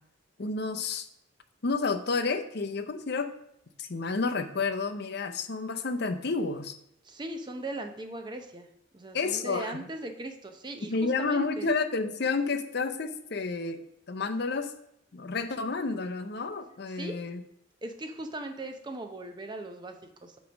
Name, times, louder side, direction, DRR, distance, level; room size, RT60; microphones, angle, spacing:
voice 1, 0.4-1.1 1.6-3.3 3.8-6.8 9.1-9.8 10.9-13.8 14.1-14.7 15.1-17.4, left 4 dB, 55° left, 8 dB, 0.6 m, -30 dB
voice 2, 7.0-8.7 8.9-11.7 16.9-17.2 17.8-20.4, right 2 dB, 20° right, 5 dB, 0.6 m, -39 dB
8.3 x 3.1 x 6.2 m, 0.75 s
head